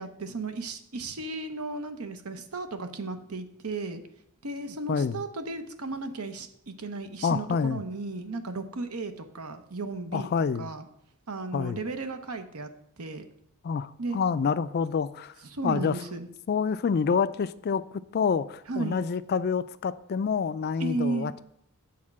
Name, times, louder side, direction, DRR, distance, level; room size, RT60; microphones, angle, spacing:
voice 1, 0.0-4.0 4.4-10.3 10.6-10.8 11.3-12.7 13.0-13.3 14.0-14.2 15.5-16.3 18.7-19.0 20.8-21.3, right 3 dB, 80° right, 0.9 m, -34 dB
voice 2, 4.9-5.2 7.2-7.8 10.1-10.7 11.5-11.8 13.6-15.3 15.6-16.0 16.5-21.4, left 6 dB, 45° left, 0.3 m, -27 dB
8.6 x 4.4 x 7.3 m
head